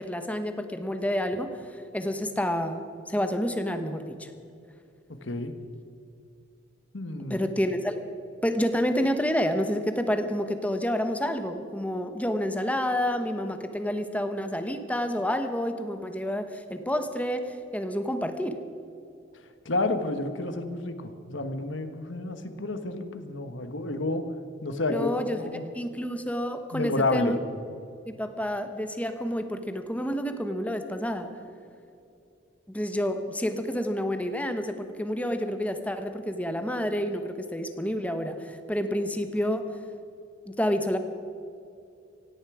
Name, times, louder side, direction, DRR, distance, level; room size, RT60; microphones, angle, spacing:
voice 1, 0.0-4.3 7.3-8.0 8.4-18.6 24.9-25.4 25.7-27.4 28.1-31.3 32.7-39.7 40.5-41.0, equal, 5° left, 7 dB, 1.1 m, -29 dB
voice 2, 5.2-5.5 6.9-7.4 19.6-24.2 24.6-25.6 26.7-27.4, left 2 dB, 75° left, 8 dB, 1.4 m, -30 dB
17.5 x 16.5 x 4.9 m, 2.6 s
head